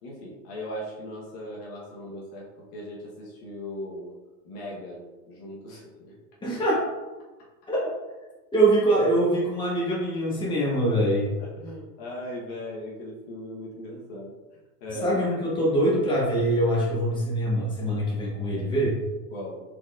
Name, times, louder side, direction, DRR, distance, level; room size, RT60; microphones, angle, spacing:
voice 1, 0.0-4.1 4.4-6.1 10.9-14.3 14.8-15.2 19.3-19.6, left 1 dB, 50° left, -4 dB, 1.2 m, -38 dB
voice 2, 6.4-6.8 7.7-7.8 8.5-11.3 15.0-19.0, right 1 dB, 10° left, -6 dB, 1.4 m, -23 dB
4.7 x 4.0 x 2.5 m, 1.2 s
supercardioid pair, 125°, 47 cm